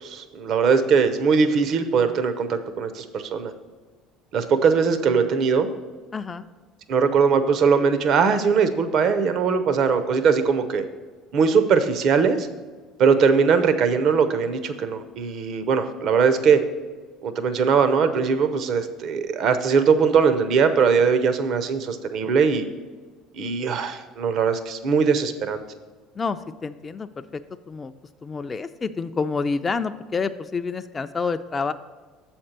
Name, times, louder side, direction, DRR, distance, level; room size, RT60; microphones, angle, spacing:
voice 1, 0.0-3.5 4.3-5.7 6.9-10.8 11.3-12.5 13.0-16.6 17.2-22.6 23.4-25.6, right 5 dB, 60° right, 10 dB, 0.7 m, -20 dB
voice 2, 6.1-6.4 26.2-27.4 27.7-27.9 28.2-31.7, left 4 dB, 25° left, 9 dB, 0.3 m, -28 dB
7.2 x 4.4 x 6.6 m, 1.4 s
supercardioid pair, 85°, 0 cm